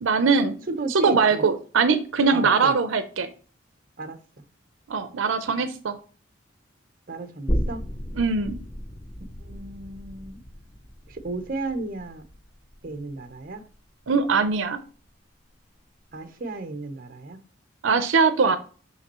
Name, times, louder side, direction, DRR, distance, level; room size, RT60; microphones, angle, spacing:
voice 1, 0.0-0.6 0.9-3.3 4.9-6.0 8.2-8.6 14.1-14.8 17.8-18.6, right 5 dB, 80° right, 10 dB, 0.6 m, -21 dB
voice 2, 0.7-1.5 2.3-2.7 4.0-4.2 7.1-7.8 9.4-10.4 11.1-12.2 12.8-13.6 16.1-17.4, right 3 dB, 45° right, 8 dB, 0.9 m, -34 dB
sound 1, 7.5-14.8 15.1-15.2, equal, 15° left, 0.4 m, -34 dB
6.0 x 5.7 x 2.9 m, 0.39 s
head